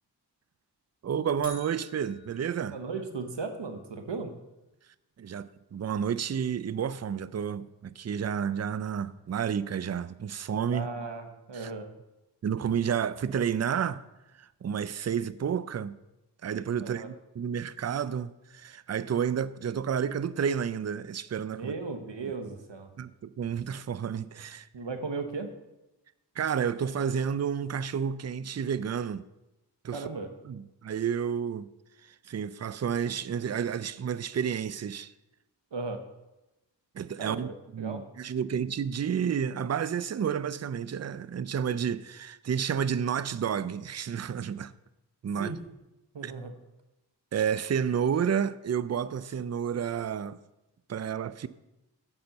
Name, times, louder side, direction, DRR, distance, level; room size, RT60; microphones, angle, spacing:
voice 1, 1.0-2.8 5.2-10.9 11.5-11.7 12.4-14.1 14.4-15.9 16.4-21.7 23.0-24.7 26.4-29.2 29.8-30.0 30.5-31.7 32.0-35.1 36.9-44.7 45.2-45.5 46.2-46.3 47.3-50.4 50.9-51.5, right 7 dB, 40° right, 0.4 m, -30 dB
sound 1, 1.4-3.6, left 2 dB, 10° right, 1.9 m, -50 dB
voice 2, 2.7-4.3 10.7-11.9 16.8-17.1 21.5-22.9 24.7-25.5 29.9-30.3 35.7-36.0 37.2-38.0 45.4-45.6 46.1-46.5, right 4 dB, 80° right, 1.0 m, -36 dB
9.5 x 4.4 x 6.5 m
wide cardioid pair, 40°, 42 cm